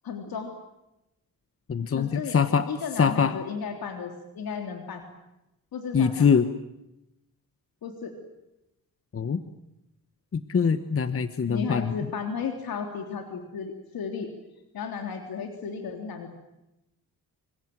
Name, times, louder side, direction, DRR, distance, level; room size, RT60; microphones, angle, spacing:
voice 1, 0.0-0.5 1.9-2.4 2.7-5.1 5.7-6.3 7.8-8.1 11.5-14.3 14.7-16.4, left 6 dB, 80° left, 4 dB, 3.3 m, -34 dB
voice 2, 1.7-2.7 3.0-3.3 5.9-6.5 9.1-9.4 10.3-11.9, left 6 dB, 40° left, 11 dB, 1.2 m, -23 dB
27.5 x 26.0 x 7.8 m, 0.89 s
wide cardioid pair, 120°, 35 cm